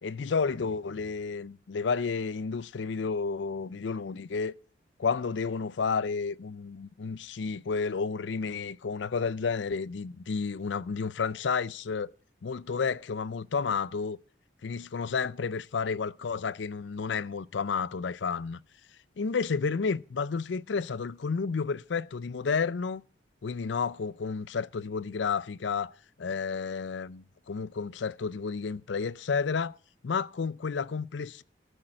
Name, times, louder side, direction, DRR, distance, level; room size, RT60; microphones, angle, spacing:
voice 1, 0.0-4.5 5.0-12.1 12.4-14.2 14.6-18.6 19.2-23.0 23.4-25.9 26.2-29.8 30.0-31.4, left 5 dB, 80° left, 0.5 m, -31 dB
14.5 x 6.5 x 7.6 m
head